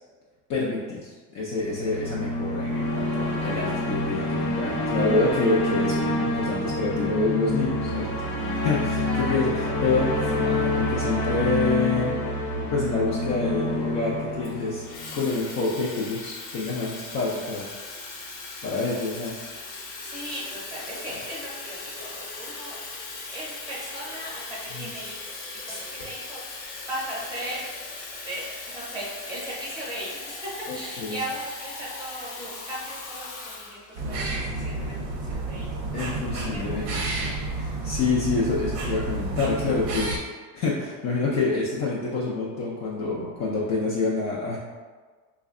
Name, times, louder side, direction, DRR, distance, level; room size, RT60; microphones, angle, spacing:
voice 1, 0.5-8.1 8.6-12.2 12.7-14.8 15.1-17.7 18.6-19.3 24.7-24.9 25.7-25.8 30.7-31.2 35.9-40.1 40.5-44.6, left 3 dB, 40° left, -6 dB, 0.4 m, -27 dB
sound 1, 1.6-15.8, left 1 dB, 85° left, 1.0 m, -27 dB
voice 2, 9.0-9.4 20.0-22.8 23.3-27.7 28.2-35.7 36.5-36.8, equal, 10° right, -7 dB, 0.8 m, -37 dB
Water tap faucet / Fill (with liquid), 14.4-34.2, left 3 dB, 60° left, 0.8 m, -39 dB
sound 2, 34.0-40.2, right 2 dB, 45° right, 0.6 m, -30 dB
3.3 x 2.1 x 3.5 m, 1.4 s
cardioid pair, 170°, 43 cm